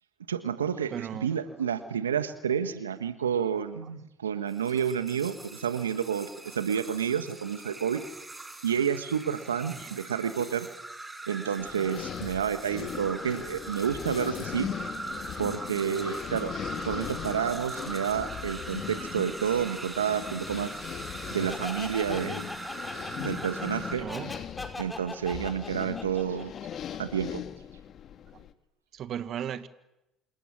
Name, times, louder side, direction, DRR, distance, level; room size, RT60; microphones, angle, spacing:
voice 1, 0.3-0.9 1.2-8.0 8.6-10.7 11.3-14.7 15.4-16.5 16.8-20.7 21.3-22.5 23.2-24.0 24.8-26.5 27.0-27.4, right 8 dB, 90° right, 1.4 m, -30 dB
voice 2, 0.9-1.7 3.8-3.9 7.6-7.8 9.7-10.0 23.1-23.3 24.0-24.4 28.3-28.4 28.9-29.7, right 9 dB, 50° right, 1.7 m, -38 dB
sound 1, 4.5-24.0, right 2 dB, 15° right, 7.4 m, -41 dB
sound 2, 11.6-28.5, left 9 dB, 50° left, 1.9 m, -39 dB
Laughter, 21.5-27.1, left 2 dB, 15° left, 5.4 m, -40 dB
28.0 x 27.5 x 7.5 m
hypercardioid pair, 65°, 0 cm